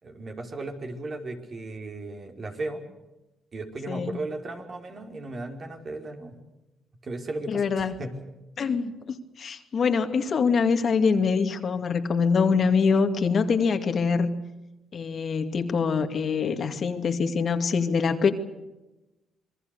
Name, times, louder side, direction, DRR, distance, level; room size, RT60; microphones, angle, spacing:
voice 1, 0.0-2.8 3.5-6.4 7.0-8.1, right 2 dB, 40° right, 3 dB, 4.7 m, -36 dB
voice 2, 3.9-4.2 7.5-8.0 8.6-8.9 9.4-14.3 14.9-18.3, left 5 dB, 50° left, 6 dB, 2.4 m, -24 dB
27.0 x 22.0 x 6.8 m, 1.0 s
cardioid pair, 90°, 0 cm